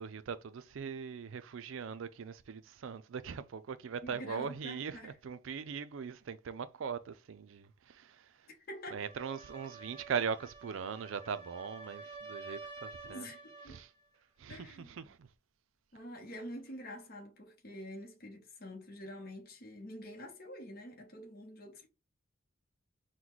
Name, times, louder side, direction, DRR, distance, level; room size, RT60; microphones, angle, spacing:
voice 1, 0.0-8.3 8.9-13.3 13.7-13.9 14.4-15.3, right 6 dB, 70° right, 0.4 m, -40 dB
voice 2, 4.0-5.2 8.7-9.1 13.1-13.8 14.5-15.1 15.9-21.9, equal, 45° left, 0.9 m, -47 dB
sound 1, 8.9-13.8, right 3 dB, 30° right, 0.8 m, -49 dB
3.9 x 2.2 x 4.5 m
head